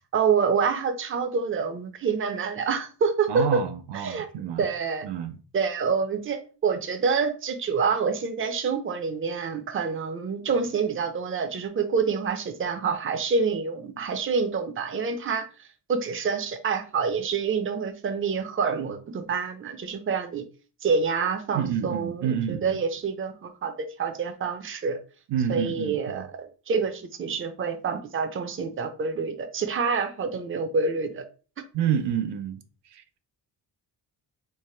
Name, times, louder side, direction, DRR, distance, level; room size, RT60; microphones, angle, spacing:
voice 1, 0.1-3.6 3.9-4.3 4.6-5.1 5.5-20.4 20.8-25.0 25.5-31.2, right 5 dB, 30° right, 0.5 m, -27 dB
voice 2, 3.3-4.6 5.0-5.4 21.5-22.8 25.3-26.3 31.7-32.6 32.9-33.0, right 8 dB, 80° right, 0.6 m, -28 dB
3.3 x 2.1 x 4.3 m
cardioid pair, 115°, 41 cm